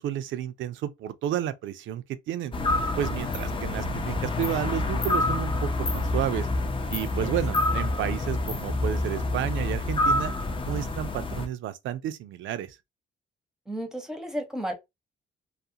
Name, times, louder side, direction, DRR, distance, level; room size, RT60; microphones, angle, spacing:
voice 1, 0.0-2.5 3.0-6.5 6.9-10.3 10.6-12.8, right 11 dB, 75° right, 0.4 m, -31 dB
sound 1, 2.5-11.5, left 2 dB, 25° left, 0.5 m, -27 dB
voice 2, 13.7-14.7, equal, ahead, 0.8 m, -33 dB
2.4 x 2.1 x 2.7 m
cardioid pair, 90°, 20 cm